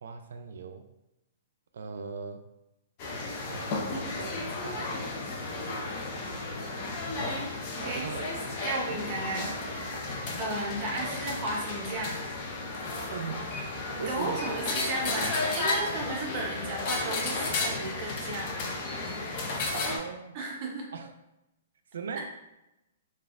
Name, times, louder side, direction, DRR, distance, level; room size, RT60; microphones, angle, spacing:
voice 1, 0.0-0.8 1.7-2.4 3.5-4.3 4.6-5.0 5.6-7.0 7.8-8.4 10.1-10.4 13.1-14.5 19.7-20.4 20.9-21.1 21.9-22.3, right 5 dB, 75° right, 7 dB, 0.4 m, -40 dB
sound 1, 3.0-20.0, left 2 dB, 30° left, 0.5 m, -33 dB
voice 2, 8.6-10.1 10.4-12.1 13.9-18.5 20.3-20.9, right 2 dB, 30° right, -1 dB, 0.7 m, -34 dB
3.2 x 2.3 x 2.4 m, 0.92 s
hypercardioid pair, 170°, 0 cm